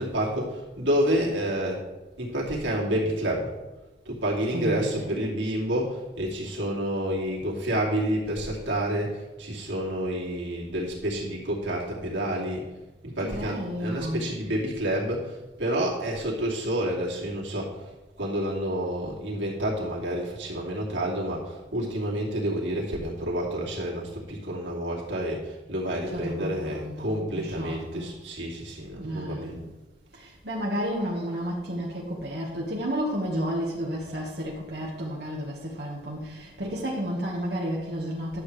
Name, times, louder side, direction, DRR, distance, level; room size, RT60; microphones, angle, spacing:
voice 1, 0.0-1.9 2.2-3.5 4.0-12.7 13.0-29.6, equal, 85° right, -4 dB, 2.6 m, -29 dB
voice 2, 4.5-5.4 13.2-14.3 26.1-28.1 29.0-29.6 30.1-38.4, equal, 60° right, -4 dB, 1.6 m, -32 dB
11.5 x 7.6 x 3.3 m, 1.1 s
head